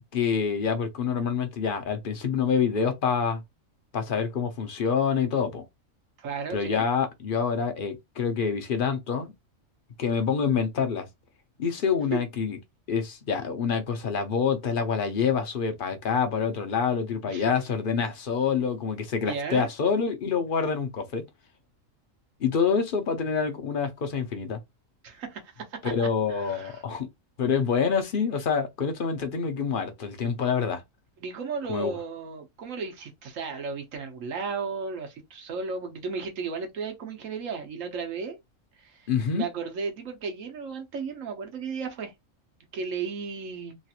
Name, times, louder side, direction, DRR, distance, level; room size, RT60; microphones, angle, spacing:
voice 1, 0.1-3.4 3.9-5.6 6.5-9.3 10.0-11.1 11.6-12.6 12.9-21.2 22.4-24.6 25.8-27.1 27.4-30.8 31.7-32.0 39.1-39.4, left 6 dB, 50° left, 0.7 m, -26 dB
voice 2, 6.2-6.8 12.1-12.2 17.3-17.6 19.3-19.7 25.0-26.8 31.2-38.4 38.8-39.1 39.3-42.1 42.7-43.8, right 5 dB, 80° right, 1.2 m, -34 dB
3.1 x 2.5 x 2.8 m
omnidirectional pair, 1.4 m